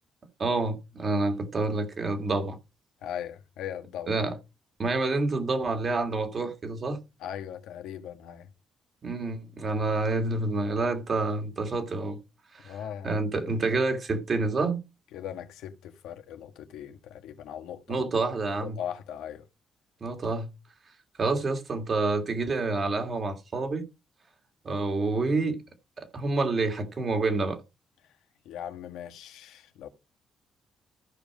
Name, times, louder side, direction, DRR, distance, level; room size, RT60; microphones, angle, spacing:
voice 1, 0.4-2.6 4.1-4.4 4.8-7.0 9.0-12.2 12.5-12.8 13.0-14.8 17.9-18.8 20.0-20.5 21.2-23.9 24.6-25.6 26.0-27.6, right 3 dB, 40° right, 2.4 m, -28 dB
voice 2, 3.0-4.2 7.2-8.5 12.6-13.4 15.1-18.0 18.6-19.4 28.4-29.9, left 9 dB, 90° left, 1.5 m, -39 dB
14.5 x 5.3 x 4.9 m
cardioid pair, 90°, 0 cm